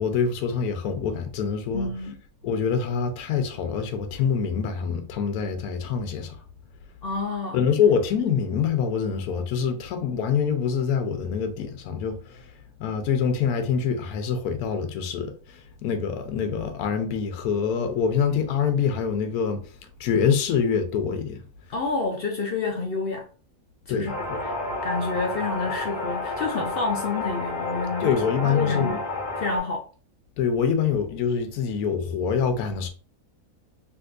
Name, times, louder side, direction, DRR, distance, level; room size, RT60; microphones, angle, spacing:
voice 1, 0.0-1.9 2.4-6.4 7.5-12.5 12.8-19.6 20.0-21.4 23.9-24.4 28.0-29.0 30.4-32.9, left 6 dB, 80° left, 1.1 m, -25 dB
voice 2, 1.7-2.1 7.0-7.6 21.7-23.3 23.9-24.1 24.4-24.5 24.8-28.1 28.4-29.0 29.4-29.8, left 3 dB, 65° left, 0.5 m, -28 dB
sound 1, 24.1-29.6, left 2 dB, 35° left, 1.0 m, -30 dB
3.5 x 2.9 x 2.4 m
omnidirectional pair, 1.6 m